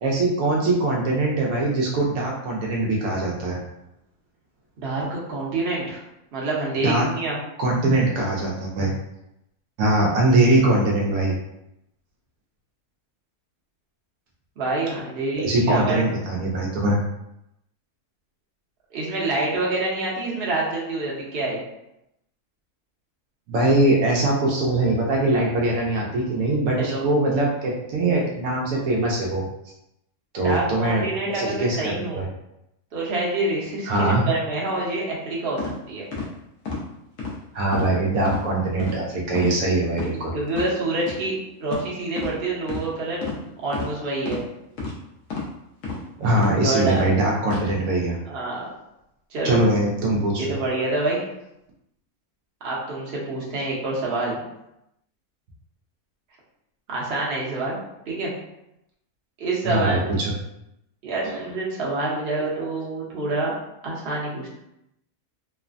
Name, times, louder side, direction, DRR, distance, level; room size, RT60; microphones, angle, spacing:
voice 1, 0.0-3.6 6.8-7.1 7.6-8.9 9.8-11.3 15.4-17.0 23.5-29.4 30.3-32.3 33.9-34.2 37.5-40.3 46.2-48.2 49.4-50.5 59.6-60.3 61.2-61.5, right 2 dB, 75° right, -3 dB, 1.0 m, -22 dB
voice 2, 4.8-6.0 6.3-7.4 14.6-16.2 18.9-21.6 26.8-27.0 30.4-32.2 32.9-36.0 40.3-41.3 41.6-44.4 46.6-47.0 48.2-48.7 49.3-49.6 50.3-51.2 52.6-54.4 56.9-57.8 58.1-58.3 59.4-60.2 61.0-63.5 63.8-64.5, right 2 dB, 50° right, -5 dB, 0.9 m, -27 dB
sound 1, 35.6-35.7 36.1-36.3 36.7-36.8 37.2-37.4 37.7-37.9 38.2-38.4 38.8-39.0 39.3-39.6 39.9-40.1 40.5-40.7 41.1-41.2 41.7-41.9 42.2-42.3 42.7-42.8 43.2-43.4 43.7-43.9 44.3-44.4 44.8-44.9 45.3-45.5 45.8-46.0 46.4-46.5 46.9-47.1 47.4-47.6, left 4 dB, 70° left, 1.0 m, -30 dB
3.1 x 2.0 x 2.4 m, 0.85 s
omnidirectional pair, 1.5 m